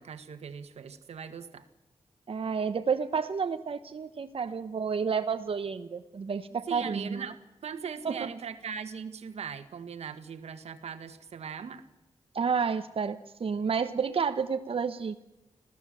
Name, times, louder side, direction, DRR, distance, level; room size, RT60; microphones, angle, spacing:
voice 1, 0.0-1.6 6.7-11.8, right 6 dB, 90° right, 10 dB, 1.6 m, -40 dB
voice 2, 2.3-7.2 8.0-8.3 12.3-15.2, right 6 dB, 60° right, 8 dB, 1.1 m, -30 dB
26.5 x 16.5 x 7.7 m, 1.0 s
cardioid pair, 75°, 11 cm